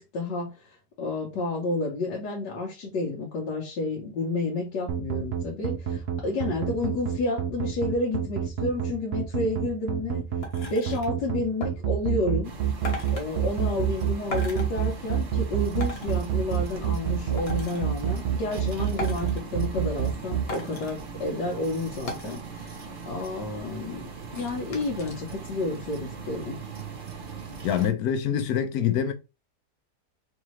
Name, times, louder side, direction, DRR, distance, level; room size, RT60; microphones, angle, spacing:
voice 1, 0.0-10.2 10.6-12.5 13.1-26.6, left 2 dB, 90° left, 1.6 m, -30 dB
sound 1, 4.9-20.4, right 10 dB, 90° right, 0.5 m, -27 dB
sound 2, 10.4-11.1 11.6-11.7 12.8-13.2 14.3-14.7 15.8-16.1 17.4-17.8 19.0-19.4 20.5-20.9 22.1-22.4 22.8-22.9 23.1-23.6 24.3-25.1 25.6-25.7, left 2 dB, 40° left, 1.2 m, -37 dB
sound 3, 12.4-27.9, right 5 dB, 45° right, 0.7 m, -40 dB
voice 2, 27.6-29.1, left 9 dB, 70° left, 1.1 m, -25 dB
4.7 x 2.6 x 3.1 m
omnidirectional pair, 1.8 m